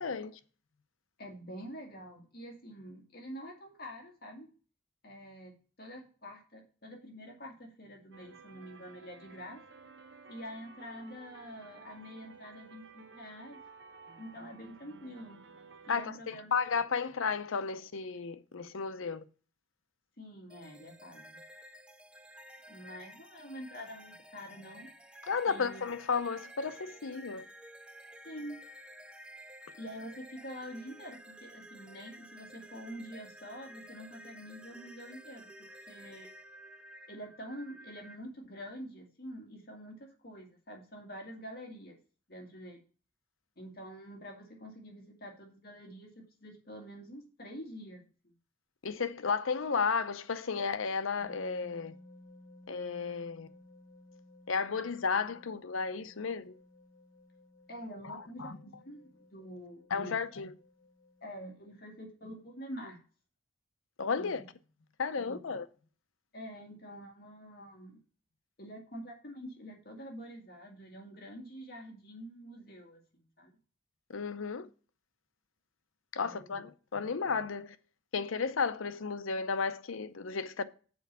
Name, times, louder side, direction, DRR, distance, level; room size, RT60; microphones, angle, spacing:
voice 1, 0.0-0.3 15.9-19.2 25.3-27.4 48.8-52.0 52.7-53.5 54.5-56.5 58.0-58.6 59.9-60.5 64.0-64.4 65.0-65.7 74.1-74.7 76.1-77.8 78.1-80.6, left 5 dB, 85° left, 0.7 m, -33 dB
voice 2, 1.2-4.5 5.0-9.6 10.3-13.6 14.2-15.4 15.8-16.7 20.2-21.4 22.7-24.9 25.5-25.9 28.2-28.6 29.7-36.3 37.1-42.0 42.3-42.8 43.6-48.3 57.7-60.1 61.2-63.0 64.2-64.4 65.2-65.5 66.3-68.0 68.6-73.5 76.2-76.6, equal, 50° left, 2.0 m, -47 dB
sound 1, 8.1-16.1, right 4 dB, 60° right, 0.8 m, -54 dB
sound 2, 20.5-38.2, equal, 5° right, 0.4 m, -52 dB
sound 3, 51.2-61.8, left 1 dB, 20° left, 2.2 m, -58 dB
7.1 x 4.5 x 6.7 m
head